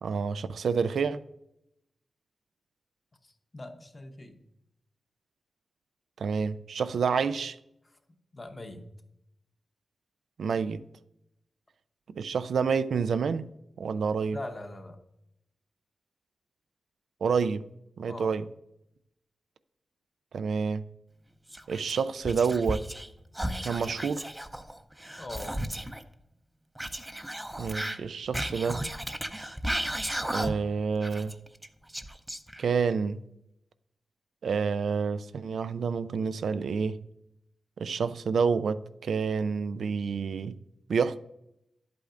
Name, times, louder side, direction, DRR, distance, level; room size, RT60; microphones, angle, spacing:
voice 1, 0.0-1.2 6.2-7.6 10.4-10.8 12.1-13.5 13.8-14.4 17.2-17.7 18.0-18.4 20.3-20.9 21.7-22.9 23.6-24.3 27.6-28.8 30.3-31.4 32.6-33.2 34.4-37.0 37.8-40.6 40.9-41.2, right 5 dB, 85° right, 0.3 m, -28 dB
voice 2, 3.2-4.4 8.3-8.8 14.3-15.0 18.1-18.3 25.2-25.6, left 2 dB, 25° left, 0.9 m, -41 dB
Whispering, 21.5-23.1 23.3-26.0 26.8-30.7 31.0-32.8, right 1 dB, 10° right, 0.5 m, -34 dB
11.0 x 8.3 x 2.5 m
wide cardioid pair, 130°, 0 cm